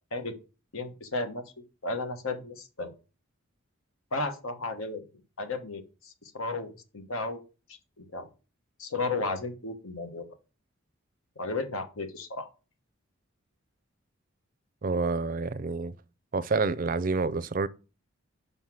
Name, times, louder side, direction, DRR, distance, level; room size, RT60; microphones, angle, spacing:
voice 1, 0.7-1.4 1.8-2.9 4.1-5.0 5.4-7.4 8.0-8.3 8.8-10.3 11.4-12.5, left 3 dB, 85° left, 1.3 m, -34 dB
voice 2, 14.8-15.9 16.3-17.7, right 4 dB, 40° right, 0.4 m, -28 dB
5.7 x 5.4 x 6.2 m
head